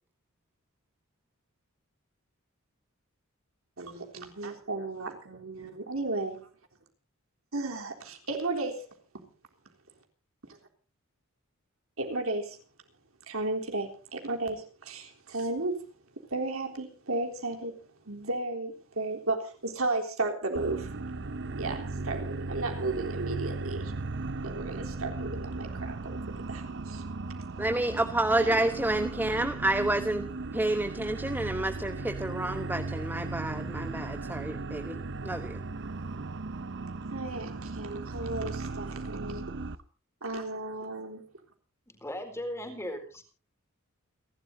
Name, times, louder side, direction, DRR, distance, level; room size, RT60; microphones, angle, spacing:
voice 1, 3.8-6.4 7.5-8.9 9.1-9.3 10.4-10.6 12.0-12.6 13.3-15.9 16.3-17.8 18.1-20.9 21.6-23.9 24.4-26.2 26.5-27.0 28.4-28.6 37.1-39.4 40.2-41.2, right 2 dB, 75° right, 3 dB, 3.7 m, -34 dB
sound 1, 20.5-39.7, right 3 dB, 55° right, 0.8 m, -37 dB
voice 2, 27.6-35.0 35.2-35.6, right 1 dB, 10° right, 7 dB, 1.1 m, -29 dB
voice 3, 41.9-43.2, left 1 dB, 15° left, 5 dB, 4.4 m, -37 dB
29.5 x 12.0 x 2.8 m, 0.37 s
head